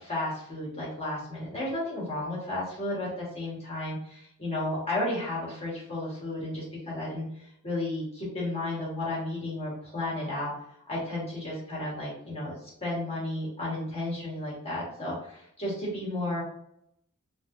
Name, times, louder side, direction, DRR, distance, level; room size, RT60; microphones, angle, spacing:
voice 1, 0.0-10.5 10.9-16.4, left 1 dB, 30° left, -6 dB, 1.4 m, -33 dB
3.2 x 2.8 x 2.6 m, 0.73 s
head